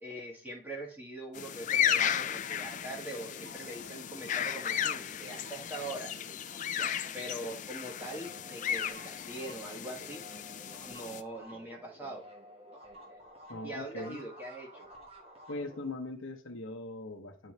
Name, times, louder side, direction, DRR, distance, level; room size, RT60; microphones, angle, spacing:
voice 1, 0.0-6.1 6.7-10.2 10.8-12.2 13.0-13.2 13.6-14.9, right 1 dB, 10° right, 1.5 m, -42 dB
sound 1, 1.3-11.2, left 9 dB, 40° left, 0.3 m, -34 dB
sound 2, 1.8-7.7 7.9-15.9, equal, 30° right, 1.1 m, -53 dB
voice 2, 13.5-14.2 15.5-17.5, left 2 dB, 80° left, 0.9 m, -40 dB
9.4 x 3.9 x 3.1 m
head